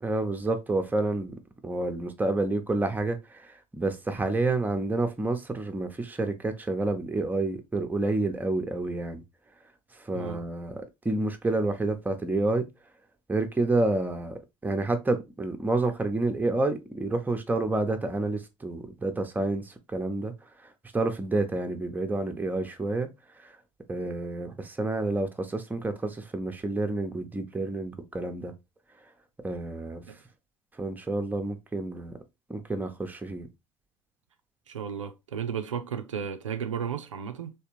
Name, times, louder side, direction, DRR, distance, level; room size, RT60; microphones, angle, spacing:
voice 1, 0.0-1.4 1.6-9.2 10.0-12.7 13.3-20.3 20.9-23.1 23.4-23.5 23.9-28.5 29.4-30.0 30.8-32.1 32.5-33.5, right 2 dB, 10° right, 0.7 m, -29 dB
voice 2, 34.7-37.5, right 7 dB, 85° right, 0.4 m, -34 dB
3.3 x 2.9 x 2.9 m
figure-of-eight pair, 65°, 16 cm